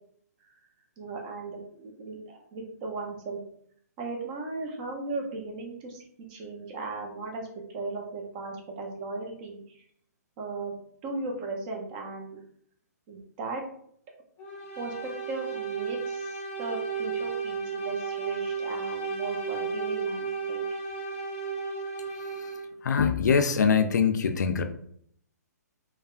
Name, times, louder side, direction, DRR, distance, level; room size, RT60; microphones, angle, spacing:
voice 1, 1.0-3.4 4.0-6.0 6.3-9.8 10.4-10.7 11.0-12.4 13.1-13.6 14.8-20.6, right 3 dB, 30° right, 1 dB, 0.6 m, -37 dB
sound 1, 14.4-22.8, right 5 dB, 15° left, 0.6 m, -33 dB
voice 2, 22.8-24.6, left 6 dB, 80° left, 7 dB, 0.4 m, -23 dB
3.3 x 2.1 x 2.4 m, 0.66 s
hypercardioid pair, 155°, 9 cm